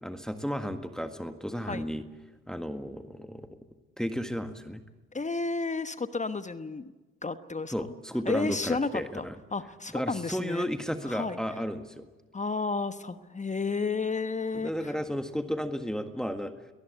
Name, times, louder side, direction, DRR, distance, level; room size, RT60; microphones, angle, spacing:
voice 1, 0.0-2.0 2.5-3.5 4.0-4.8 7.7-9.3 9.9-12.1 14.5-16.5, equal, ahead, 7 dB, 1.8 m, -33 dB
voice 2, 5.1-6.9 7.2-7.9 8.2-9.2 9.5-10.7 11.0-11.4 12.3-14.9, left 4 dB, 25° left, 11 dB, 1.1 m, -32 dB
23.0 x 19.5 x 8.2 m, 1.2 s
hypercardioid pair, 55°, 30 cm